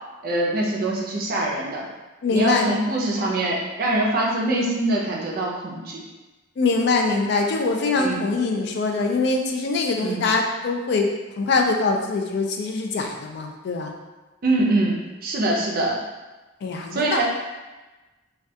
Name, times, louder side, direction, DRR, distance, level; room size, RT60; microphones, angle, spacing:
voice 1, 0.2-1.8 2.3-6.0 8.0-8.2 10.0-10.2 14.4-16.0 16.9-17.2, right 2 dB, 45° right, -2 dB, 0.4 m, -24 dB
voice 2, 2.2-2.7 6.6-11.1 11.4-13.9 16.6-17.2, left 3 dB, 55° left, 2 dB, 0.3 m, -23 dB
2.3 x 2.2 x 2.7 m, 1.2 s
head